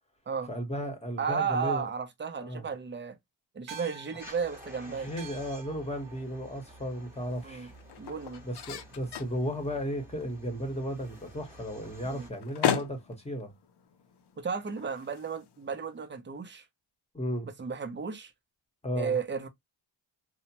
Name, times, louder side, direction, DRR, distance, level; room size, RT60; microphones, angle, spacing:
voice 1, 0.5-1.9 2.4-2.6 5.0-7.7 8.4-13.5 17.1-17.5 18.8-19.2, equal, 15° left, 1.0 m, -34 dB
voice 2, 1.2-3.2 3.5-5.1 7.4-7.7 8.0-8.4 12.0-12.3 14.4-16.6 17.6-18.3 19.0-19.5, right 6 dB, 25° right, 0.6 m, -33 dB
sound 1, 3.7-8.4, right 6 dB, 80° right, 0.7 m, -51 dB
sound 2, 4.2-12.3, right 1 dB, 5° right, 1.0 m, -51 dB
sound 3, 5.7-16.1, left 9 dB, 60° left, 0.6 m, -39 dB
2.8 x 2.1 x 2.7 m
cardioid pair, 90°, 47 cm